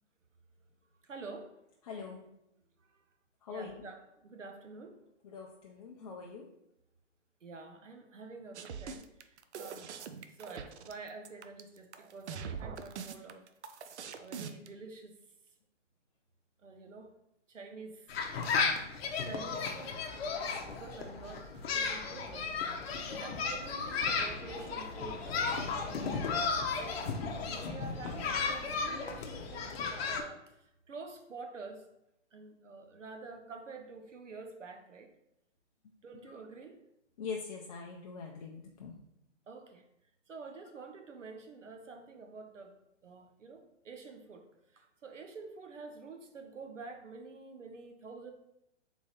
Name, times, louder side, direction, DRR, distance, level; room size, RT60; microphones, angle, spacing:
voice 1, 1.0-1.5 3.5-5.0 7.4-9.0 9.6-9.9 10.4-13.4 14.2-15.1 16.6-17.1 17.5-18.1 19.2-19.9 20.3-22.6 23.1-26.2 26.7-27.0 27.4-30.4 30.9-31.8 32.3-35.1 36.0-36.8 39.5-39.8 40.3-42.7 43.0-44.5 44.7-48.3, right 4 dB, 90° right, 5 dB, 0.9 m, -48 dB
voice 2, 1.8-2.2 3.4-3.8 5.2-6.5 27.5-27.6 29.6-29.7 36.2-36.3 37.2-38.9, left 5 dB, 30° left, -1 dB, 0.4 m, -43 dB
sound 1, 8.5-14.7, right 6 dB, 65° right, 0.5 m, -43 dB
sound 2, 18.1-30.2, left 5 dB, 55° left, 0.8 m, -34 dB
sound 3, 19.9-28.6, right 1 dB, 25° right, 0.8 m, -53 dB
3.8 x 3.0 x 4.1 m, 0.86 s
hypercardioid pair, 130°, 37 cm